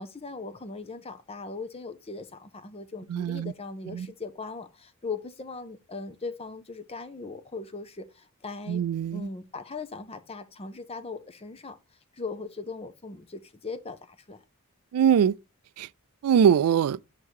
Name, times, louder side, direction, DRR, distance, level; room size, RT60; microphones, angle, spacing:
voice 1, 0.0-8.8 9.1-11.8 12.1-14.4, left 4 dB, 30° left, 0.7 m, -39 dB
voice 2, 3.1-3.5 3.9-4.1 8.7-9.3 14.9-15.3 15.8-15.9 16.2-17.0, right 8 dB, 85° right, 0.3 m, -22 dB
6.5 x 3.7 x 4.6 m
head